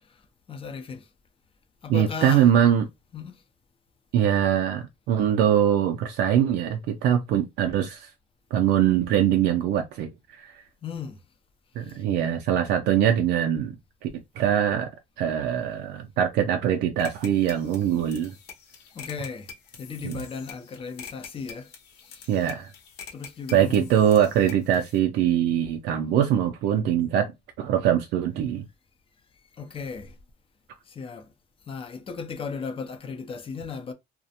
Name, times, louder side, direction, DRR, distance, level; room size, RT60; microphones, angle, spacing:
voice 1, 0.5-1.1 1.8-2.5 3.1-3.4 10.8-11.2 11.8-12.0 18.9-19.5 19.8-21.7 22.0-22.3 23.1-23.9 29.5-30.2 30.9-31.3 31.7-33.9, left 5 dB, 35° left, 0.5 m, -36 dB
voice 2, 1.9-2.9 4.1-8.1 8.5-10.6 11.8-13.7 14.0-14.1 14.4-14.9 15.2-18.3 20.0-20.2 22.3-22.7 23.5-27.3 27.6-28.7, right 10 dB, 85° right, 0.4 m, -22 dB
sound 1, 17.0-25.0, left 7 dB, 80° left, 0.8 m, -46 dB
2.4 x 2.1 x 2.7 m
cardioid pair, 110°, 17 cm